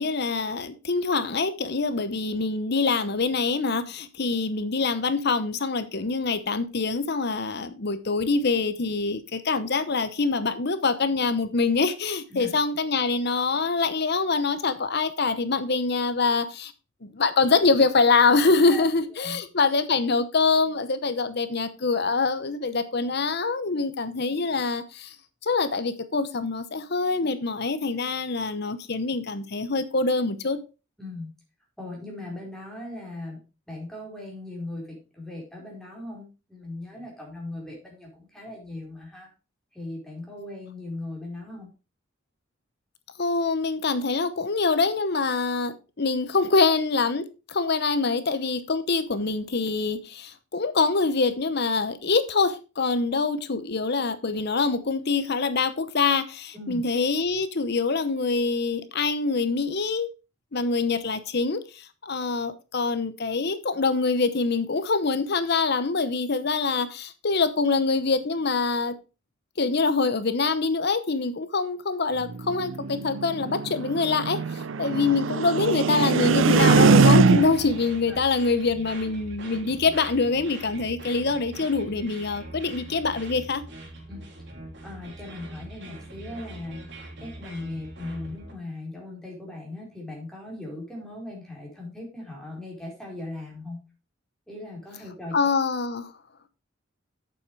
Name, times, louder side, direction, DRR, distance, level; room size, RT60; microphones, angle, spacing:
voice 1, 0.0-16.7 17.0-25.1 25.4-30.6 43.2-60.1 60.5-68.9 69.6-74.4 74.8-83.6 95.3-96.1, left 4 dB, 55° left, 0.9 m, -25 dB
voice 2, 18.7-19.4 31.0-31.3 31.8-33.4 33.7-39.3 39.7-41.7 44.3-44.4 56.5-56.8 78.1-78.2 84.1-84.2 84.8-86.9 87.2-93.8 94.5-95.4, left 2 dB, 5° left, 4.3 m, -38 dB
sound 1, 72.3-77.8, right 4 dB, 80° right, 0.5 m, -21 dB
sound 2, 76.3-88.5, right 2 dB, 65° right, 3.7 m, -42 dB
8.5 x 7.1 x 4.8 m
head